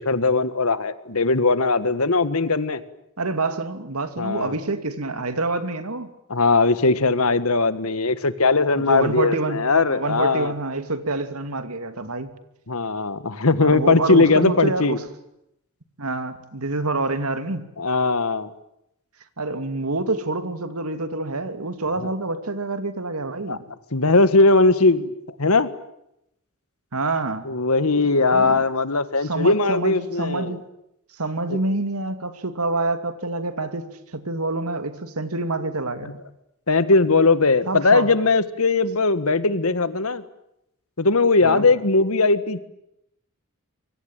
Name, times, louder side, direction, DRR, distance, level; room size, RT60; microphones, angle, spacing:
voice 1, 0.0-2.8 4.2-4.5 6.3-10.5 12.7-15.0 17.8-18.5 22.0-22.1 23.5-23.6 23.9-25.1 25.4-25.7 27.4-30.6 31.5-31.6 36.7-40.2 41.0-42.6, left 3 dB, 75° left, 13 dB, 1.7 m, -19 dB
voice 2, 3.2-6.1 8.8-12.3 13.6-15.0 16.0-17.7 19.4-23.7 26.9-27.5 28.3-28.6 29.2-30.6 31.1-36.1 37.7-38.1 41.4-41.7, right 2 dB, 80° right, 9 dB, 2.6 m, -27 dB
25.5 x 23.5 x 9.0 m, 0.81 s
head